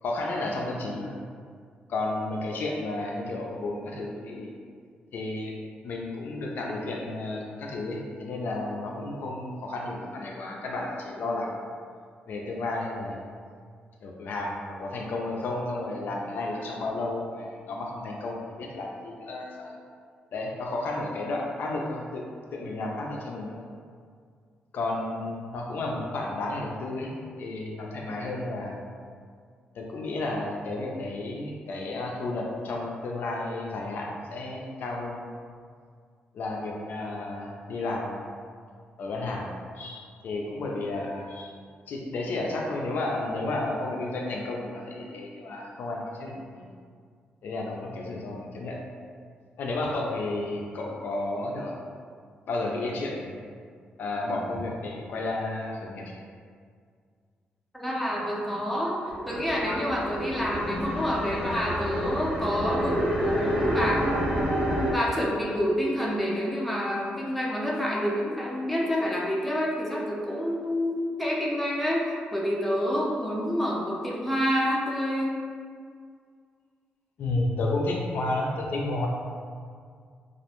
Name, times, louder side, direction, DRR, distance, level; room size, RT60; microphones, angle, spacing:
voice 1, 0.0-1.1 1.9-4.5 5.1-5.6 5.8-11.6 12.3-13.2 14.0-19.8 20.3-22.3 22.5-23.6 24.7-28.8 29.7-35.2 36.3-38.3 39.0-39.5 39.8-41.5 41.9-46.7 47.4-48.8 49.6-51.8 52.5-53.4 54.0-56.2 77.2-79.1, left 2 dB, 65° left, -1 dB, 0.3 m, -32 dB
voice 2, 57.7-58.9 59.3-64.1 64.9-72.0 72.3-75.3, equal, ahead, -5 dB, 0.4 m, -28 dB
sound 1, 59.1-64.9, equal, 75° right, 0.9 m, -29 dB
2.3 x 2.1 x 2.9 m, 2.1 s
cardioid pair, 120°, 3 cm